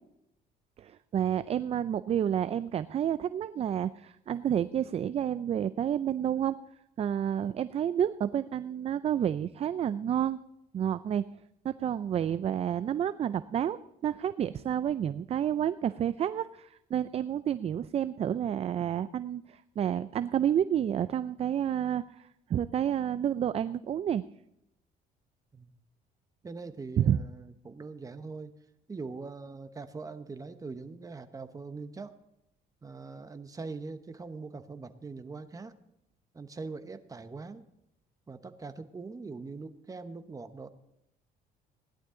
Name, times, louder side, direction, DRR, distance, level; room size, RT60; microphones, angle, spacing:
voice 1, 0.8-6.6 7.0-10.4 10.7-11.3 11.6-24.3 27.0-27.2, right 9 dB, 35° right, 14 dB, 0.4 m, -30 dB
voice 2, 26.4-28.5 28.9-32.1 32.8-35.7 36.3-37.6 38.3-40.7, right 4 dB, 20° right, 9 dB, 1.0 m, -42 dB
16.5 x 11.5 x 3.8 m, 0.81 s
cardioid pair, 110°, 17 cm